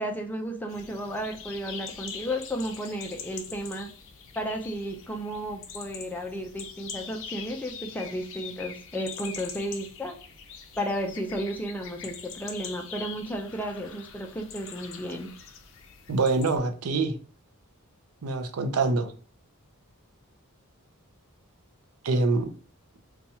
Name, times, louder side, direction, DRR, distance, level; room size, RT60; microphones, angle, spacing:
voice 1, 0.0-3.9 4.4-10.1 10.8-15.3, equal, 10° left, 2 dB, 0.4 m, -33 dB
sound 1, 0.7-16.6, left 7 dB, 60° left, 0.5 m, -43 dB
voice 2, 16.1-17.1 18.2-19.1 22.0-22.5, right 3 dB, 80° right, 6 dB, 0.5 m, -25 dB
2.8 x 2.3 x 4.0 m, 0.40 s
head